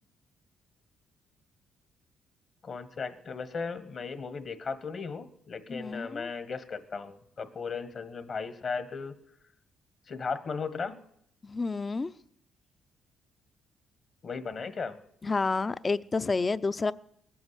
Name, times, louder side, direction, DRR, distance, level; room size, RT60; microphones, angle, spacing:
voice 1, 2.6-9.1 10.1-11.0 14.2-15.0, left 5 dB, 50° left, 11 dB, 1.4 m, -36 dB
voice 2, 5.7-6.3 11.4-12.1 15.2-16.9, left 3 dB, 30° left, 16 dB, 0.6 m, -29 dB
20.0 x 8.6 x 8.2 m, 0.71 s
cardioid pair, 90°, 0 cm